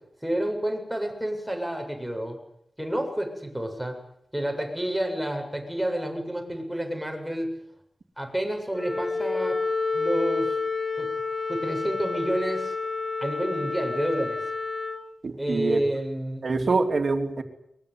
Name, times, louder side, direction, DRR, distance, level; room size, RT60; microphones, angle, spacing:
voice 1, 0.2-2.4 2.8-4.0 4.3-7.5 8.2-9.6 9.9-10.5 11.0-11.1 11.5-12.7 13.2-14.4 15.4-16.4 16.7-16.8, right 1 dB, 5° right, 3 dB, 7.7 m, -29 dB
Wind instrument woodwind instrument, 8.7-15.0, left 4 dB, 35° left, 5.3 m, -29 dB
voice 2, 15.2-15.8 16.4-17.4, right 3 dB, 50° right, 6 dB, 3.3 m, -25 dB
22.5 x 22.5 x 9.7 m, 0.75 s
wide cardioid pair, 100°, 0 cm